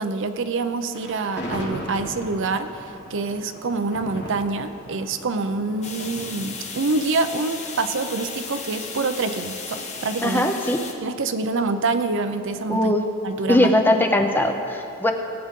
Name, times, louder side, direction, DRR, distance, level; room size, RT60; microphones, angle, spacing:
voice 1, 0.0-9.8 10.0-10.5 11.0-12.9 13.2-13.7, right 3 dB, 60° right, 9 dB, 0.6 m, -26 dB
Thunder, 0.9-8.1, equal, 50° left, 1.8 m, -38 dB
sound 1, 5.8-10.9, left 4 dB, 30° left, 1.0 m, -35 dB
voice 2, 10.2-10.8 12.7-13.0 13.5-15.1, left 1 dB, 10° left, 4 dB, 0.6 m, -20 dB
18.5 x 8.7 x 3.7 m, 2.7 s
head